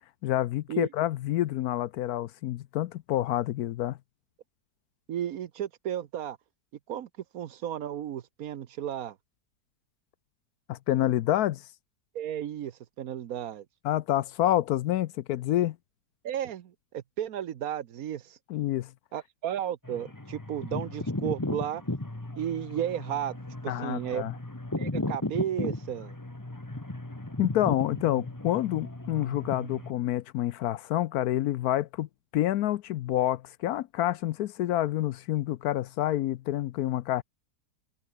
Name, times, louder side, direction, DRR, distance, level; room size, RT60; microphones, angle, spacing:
voice 1, 0.2-4.0 10.7-11.7 13.8-15.8 18.5-18.9 23.7-24.3 27.4-32.1 32.3-37.2, left 13 dB, 70° left, 1.0 m, -28 dB
voice 2, 5.1-6.4 6.9-7.1 7.3-9.2 12.1-13.6 16.2-18.4 19.1-21.8 22.3-23.4 23.6-24.2 24.8-26.2, right 10 dB, 65° right, 1.2 m, -33 dB
sound 1, 19.8-29.9, left 1 dB, 10° left, 1.6 m, -35 dB
omnidirectional pair, 1.8 m